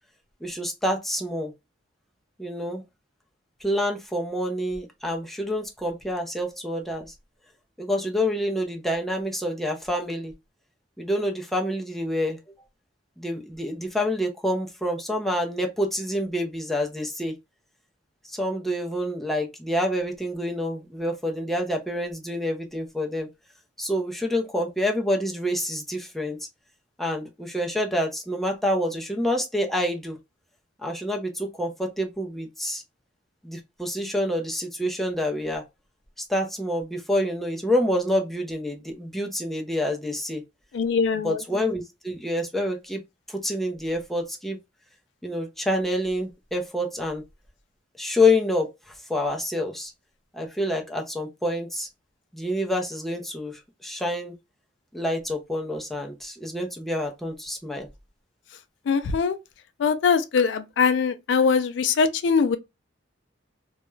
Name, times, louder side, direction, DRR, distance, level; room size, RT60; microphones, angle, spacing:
voice 1, 0.4-1.5 2.4-2.8 3.6-7.1 7.8-10.3 11.0-12.4 13.2-17.3 18.3-23.3 23.8-26.4 27.0-30.2 30.8-32.8 33.4-35.6 36.3-40.4 41.2-43.0 43.3-44.6 45.2-47.2 48.0-48.7 49.1-49.9 50.3-51.9 52.3-54.3 54.9-57.9, left 1 dB, ahead, 0.4 m, -27 dB
voice 2, 40.7-41.4 58.9-59.4 59.8-62.6, left 5 dB, 65° left, 0.3 m, -22 dB
2.3 x 2.1 x 3.0 m
head